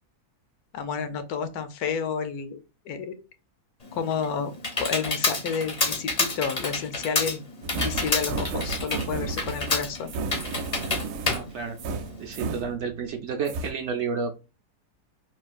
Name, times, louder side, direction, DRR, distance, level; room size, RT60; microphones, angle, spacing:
voice 1, 0.7-2.6 2.9-3.1 3.9-4.5 4.8-7.4 7.7-10.1, left 6 dB, 75° left, 9 dB, 1.1 m, -30 dB
Computer keyboard, 3.8-12.4, left 3 dB, 40° left, 0.5 m, -29 dB
sound 1, 7.6-13.2 13.5-13.7, right 4 dB, 85° right, 1.1 m, -33 dB
voice 2, 11.3-11.8 12.2-14.3, right 5 dB, 65° right, 5 dB, 0.7 m, -31 dB
3.6 x 2.3 x 2.4 m, 0.29 s
omnidirectional pair, 1.7 m